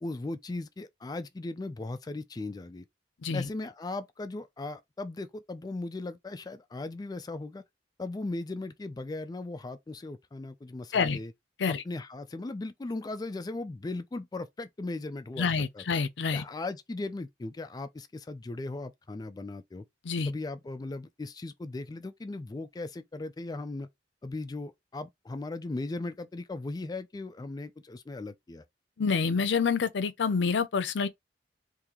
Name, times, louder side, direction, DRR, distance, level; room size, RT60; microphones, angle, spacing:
voice 1, 0.0-2.8 3.3-7.6 8.0-11.3 11.7-15.5 15.7-15.8 16.3-19.8 20.3-23.9 24.2-28.6, left 2 dB, 20° left, 0.3 m, -37 dB
voice 2, 15.4-16.4 20.0-20.3 29.0-31.1, left 5 dB, 85° left, 0.5 m, -27 dB
3.6 x 2.7 x 2.9 m
head